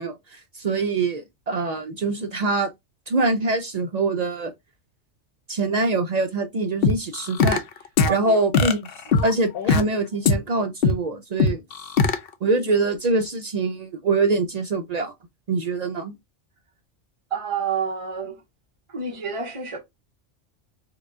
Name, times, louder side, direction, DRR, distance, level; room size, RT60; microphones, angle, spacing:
voice 1, 0.0-2.7 3.1-4.5 5.5-7.6 8.1-8.9 9.2-11.6 12.4-15.1 15.5-16.1, right 3 dB, 70° right, 0.3 m, -24 dB
sound 1, 6.8-7.6 8.0-8.1 8.5-9.8 10.3-10.4 10.8-10.9 11.4-12.2, left 5 dB, 60° left, 0.7 m, -19 dB
voice 2, 8.0-8.4 17.3-18.4 18.9-19.8, right 6 dB, 30° right, 0.8 m, -29 dB
4.6 x 2.2 x 3.6 m
omnidirectional pair, 1.2 m